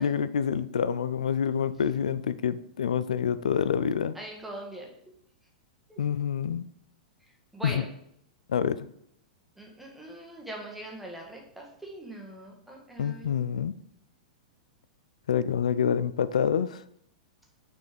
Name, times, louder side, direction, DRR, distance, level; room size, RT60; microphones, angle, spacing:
voice 1, 0.0-4.2 6.0-6.7 7.6-7.8 8.5-8.9 13.0-13.8 15.3-16.8, left 7 dB, 65° left, 15 dB, 0.4 m, -27 dB
voice 2, 4.1-4.9 5.9-6.0 7.2-7.9 9.5-13.5, right 1 dB, 5° right, -1 dB, 1.6 m, -42 dB
6.2 x 4.5 x 4.8 m, 0.72 s
figure-of-eight pair, 100°, 4 cm